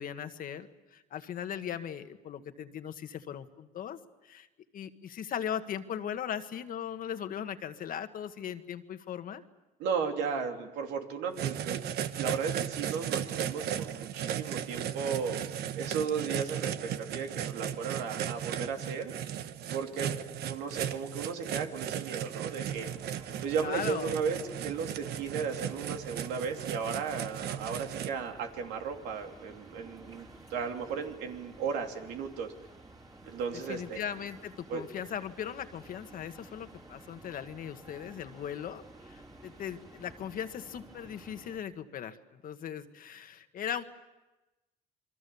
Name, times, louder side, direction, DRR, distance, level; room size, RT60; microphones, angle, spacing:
voice 1, 0.0-4.5 4.7-9.4 23.6-24.1 33.5-43.8, left 9 dB, 55° left, 9 dB, 1.5 m, -38 dB
voice 2, 9.8-15.4 15.8-19.1 19.7-22.9 23.4-32.5 33.3-34.0 34.7-34.8, right 6 dB, 90° right, 3 dB, 3.0 m, -35 dB
sound 1, 11.4-28.1, right 10 dB, 70° right, 1.1 m, -36 dB
sound 2, 22.7-41.6, right 2 dB, 25° right, 3.3 m, -53 dB
28.5 x 23.5 x 7.0 m, 1.0 s
cardioid pair, 110°, 17 cm